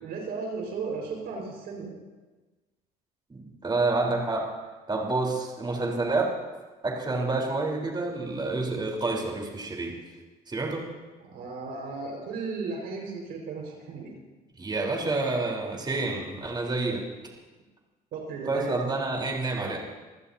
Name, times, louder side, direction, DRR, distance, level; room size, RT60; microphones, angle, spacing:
voice 1, 0.0-2.0 11.2-14.1 18.1-18.8, right 4 dB, 70° right, 0 dB, 5.1 m, -35 dB
voice 2, 3.3-4.5 4.9-6.3 6.8-9.9 10.5-10.9 14.6-17.1 18.5-19.8, right 3 dB, 25° right, -2 dB, 4.1 m, -28 dB
26.0 x 15.0 x 2.8 m, 1.2 s
supercardioid pair, 75°, 17 cm